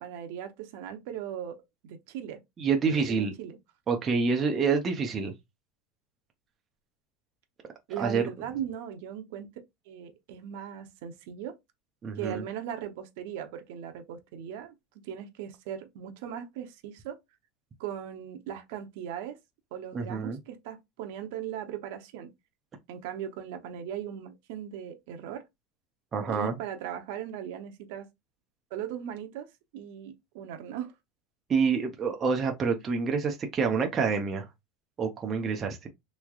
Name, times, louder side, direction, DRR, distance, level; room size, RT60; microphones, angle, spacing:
voice 1, 0.0-2.4 2.9-3.6 7.9-9.5 9.9-11.6 12.2-14.7 15.0-17.2 17.8-19.4 19.7-22.3 22.9-25.4 26.3-28.1 28.7-30.9, right 9 dB, 65° right, 0.7 m, -38 dB
voice 2, 2.6-3.3 3.9-5.3 8.0-8.2 12.0-12.4 19.9-20.4 26.1-26.6 31.5-34.5 35.0-35.9, right 5 dB, 20° right, 0.5 m, -27 dB
3.4 x 3.1 x 2.3 m
supercardioid pair, 170°, 0 cm